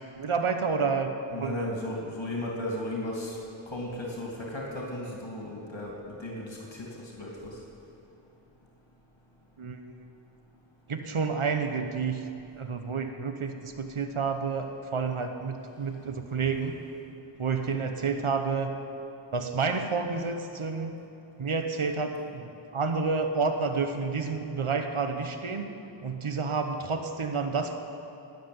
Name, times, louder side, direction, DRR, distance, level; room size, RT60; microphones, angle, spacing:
voice 1, 0.2-1.1 1.4-1.7 9.6-9.8 10.9-12.2 12.6-16.7 17.4-18.8 19.3-20.9 21.4-25.7 26.0-27.7, right 4 dB, 85° right, 6 dB, 1.1 m, -29 dB
voice 2, 1.3-3.4 3.7-7.6, left 1 dB, 65° left, -3 dB, 2.7 m, -35 dB
13.0 x 9.4 x 9.4 m, 2.9 s
wide cardioid pair, 40°, 48 cm